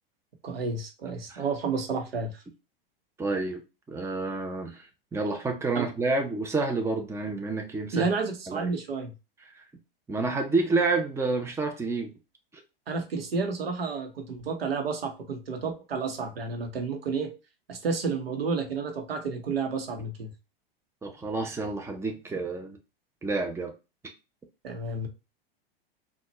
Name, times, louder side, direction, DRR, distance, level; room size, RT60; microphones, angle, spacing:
voice 1, 0.4-2.4 5.7-5.9 7.9-9.1 12.9-17.3 17.7-20.3 24.6-25.1, right 4 dB, 85° right, 1.0 m, -31 dB
voice 2, 3.2-3.6 3.9-4.9 5.1-8.1 8.5-8.7 9.5-9.6 10.1-12.1 21.0-22.8 23.2-23.7, right 3 dB, 10° right, 0.7 m, -29 dB
4.1 x 2.4 x 3.0 m
hypercardioid pair, 100°, 29 cm